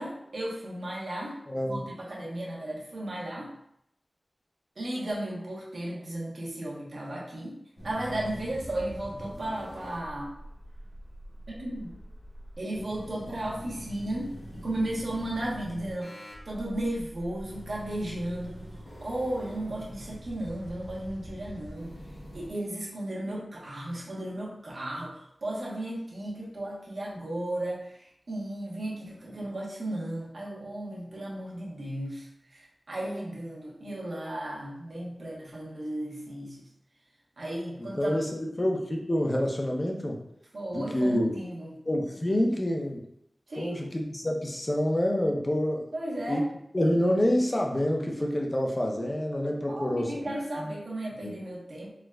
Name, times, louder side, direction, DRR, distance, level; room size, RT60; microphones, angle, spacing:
voice 1, 0.0-1.3 1.7-3.5 4.8-7.5 7.8-10.3 11.5-11.9 12.6-16.1 16.5-18.5 19.0-21.9 22.3-32.3 32.5-36.6 37.4-38.1 40.5-41.7 43.5-43.7 45.9-46.5 49.7-51.9, right 1 dB, 80° right, -5 dB, 1.0 m, -35 dB
voice 2, 1.5-1.8 37.8-40.2 40.7-41.3 41.9-43.0 43.5-45.9 46.3-46.4 46.7-50.1 50.6-50.7 51.2-51.3, left 1 dB, 30° left, 0 dB, 0.5 m, -27 dB
sound 1, 7.8-22.5, equal, 60° left, 1.4 m, -44 dB
4.4 x 2.2 x 2.2 m, 0.76 s
wide cardioid pair, 85°, 0 cm